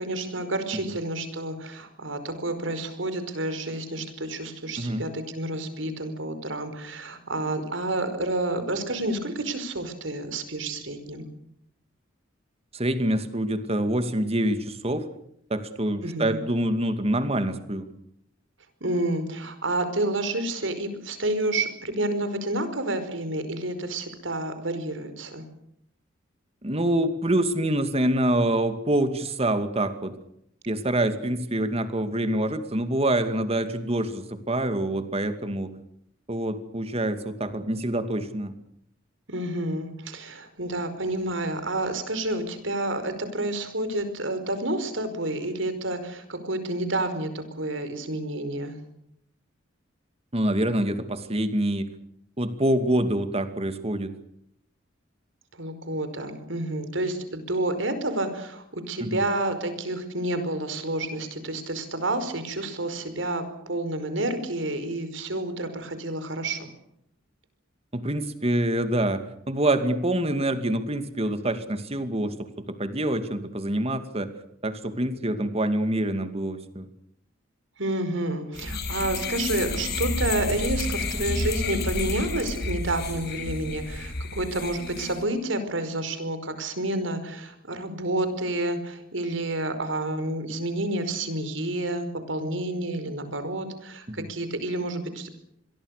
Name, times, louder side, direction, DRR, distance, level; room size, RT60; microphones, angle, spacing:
voice 1, 0.0-11.3 16.0-16.4 18.8-25.4 39.3-48.8 55.6-66.7 77.8-95.3, right 1 dB, 75° right, 10 dB, 5.1 m, -29 dB
voice 2, 12.7-15.1 15.5-17.9 26.6-30.1 30.7-35.7 36.3-38.5 50.3-51.9 52.4-54.1 59.0-59.2 67.9-72.3 72.8-74.3 74.6-76.9 94.1-94.3, right 1 dB, 30° right, 9 dB, 2.4 m, -26 dB
sound 1, 78.5-85.2, left 2 dB, 60° left, 5.7 m, -30 dB
27.0 x 22.5 x 6.7 m, 0.74 s
head